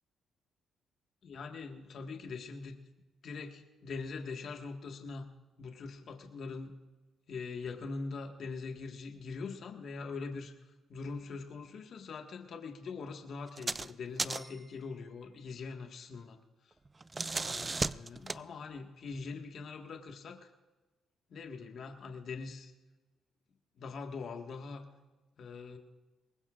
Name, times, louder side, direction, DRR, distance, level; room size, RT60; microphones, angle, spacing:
voice 1, 1.2-2.8 3.2-5.3 5.6-6.7 7.3-10.5 10.9-16.4 16.6-16.7 17.4-20.5 21.3-22.7 23.8-24.8 25.4-25.8, left 4 dB, 60° left, 3 dB, 1.6 m, -42 dB
sound 1, 13.5-13.9 14.2-14.6 16.8-18.4, right 3 dB, 25° right, 0.4 m, -35 dB
23.0 x 19.5 x 2.5 m, 1.2 s
cardioid pair, 90°, 0 cm